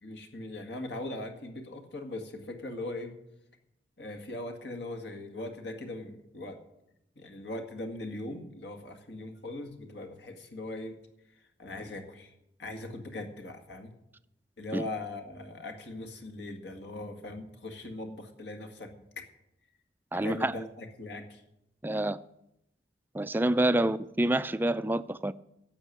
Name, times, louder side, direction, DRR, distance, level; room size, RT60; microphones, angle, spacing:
voice 1, 0.0-3.1 4.0-6.6 7.2-11.0 11.6-12.3 12.6-13.9 14.6-18.9 20.1-21.4, left 2 dB, 65° left, 2.0 m, -40 dB
voice 2, 20.1-20.5 21.8-22.2 23.1-25.3, right 1 dB, 10° right, 0.4 m, -27 dB
11.5 x 7.5 x 9.4 m
head